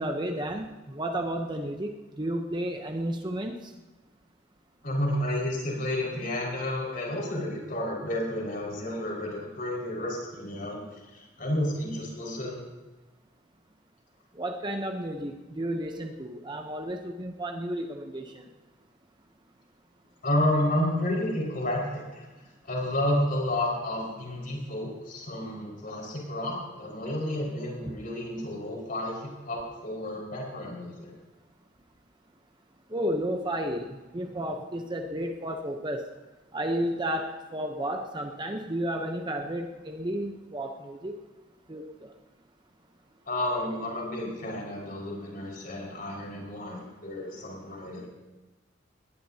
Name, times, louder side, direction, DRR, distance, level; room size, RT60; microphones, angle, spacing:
voice 1, 0.0-1.9 2.2-3.7 14.3-18.5 27.9-28.0 32.9-36.1 36.5-41.1 41.7-42.1, right 1 dB, 25° right, 4 dB, 0.8 m, -32 dB
voice 2, 4.8-10.8 11.1-12.6 20.2-22.3 22.6-31.1 43.3-48.1, left 1 dB, 45° left, -2 dB, 5.3 m, -31 dB
19.5 x 19.5 x 2.8 m, 1.2 s
head